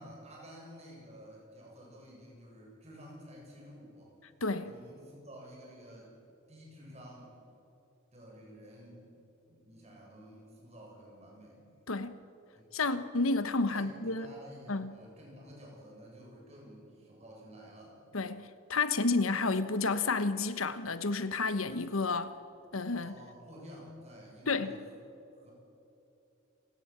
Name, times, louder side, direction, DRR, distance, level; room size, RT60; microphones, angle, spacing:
voice 1, 0.0-4.1 4.6-6.2 6.5-7.4 8.1-9.0 9.5-11.6 12.5-12.7 13.7-18.0 23.0-24.8 25.3-25.5, equal, 30° right, 7.6 m, -51 dB
voice 2, 11.9-12.2 12.7-14.3 14.7-14.9 18.1-22.3 22.7-23.1 24.5-24.8, left 3 dB, 90° left, 1.2 m, -31 dB
28.5 x 18.0 x 7.5 m
head